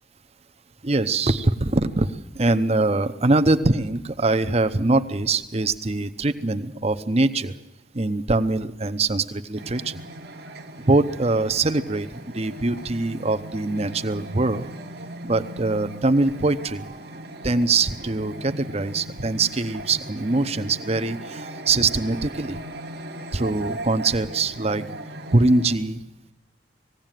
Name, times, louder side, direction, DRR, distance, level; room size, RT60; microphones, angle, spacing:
voice 1, 0.8-7.6 7.9-10.0 10.9-14.7 15.2-16.9 17.4-22.6 23.3-24.8 25.3-26.0, right 2 dB, 35° right, 10 dB, 0.8 m, -23 dB
sound 1, 9.5-25.8, right 1 dB, 60° right, 1.2 m, -38 dB
19.0 x 16.5 x 9.1 m, 1.1 s
head